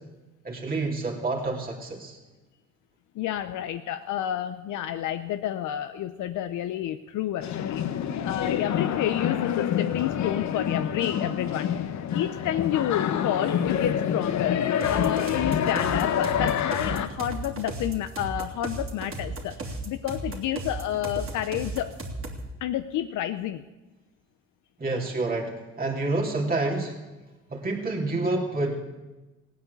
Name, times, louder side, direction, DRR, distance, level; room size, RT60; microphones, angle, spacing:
voice 1, 0.4-2.2 24.8-27.0 27.5-28.8, right 2 dB, 30° right, -1 dB, 2.9 m, -28 dB
voice 2, 3.1-22.0 22.6-23.7, left 11 dB, 85° left, 8 dB, 0.7 m, -30 dB
sound 1, 7.4-17.1, left 9 dB, 65° left, 1.0 m, -27 dB
sound 2, 14.8-22.5, right 2 dB, 45° right, 3.2 m, -35 dB
17.0 x 9.3 x 8.3 m, 1.1 s
cardioid pair, 90°, 30 cm